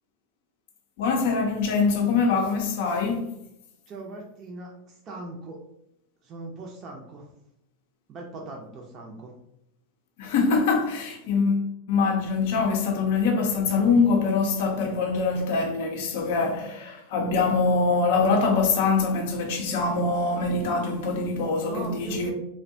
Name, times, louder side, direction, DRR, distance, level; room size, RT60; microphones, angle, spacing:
voice 1, 1.0-3.3 10.2-22.3, left 4 dB, 65° left, 0.5 m, -24 dB
voice 2, 3.9-5.6 6.2-7.3 8.1-9.3 21.6-22.3, right 2 dB, 35° right, 0.5 m, -40 dB
2.6 x 2.1 x 2.6 m
hypercardioid pair, 105°, 0 cm